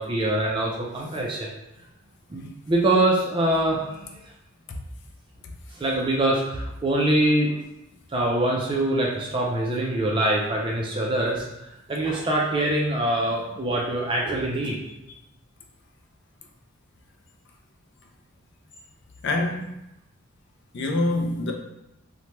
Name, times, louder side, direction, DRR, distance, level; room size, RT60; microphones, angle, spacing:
voice 1, 0.0-1.5 2.3-4.1 5.7-7.5 8.1-14.9, right 1 dB, 25° right, -2 dB, 0.4 m, -24 dB
voice 2, 19.2-19.7 20.7-21.5, left 2 dB, 55° left, 3 dB, 0.4 m, -25 dB
3.1 x 2.1 x 2.9 m, 0.89 s
head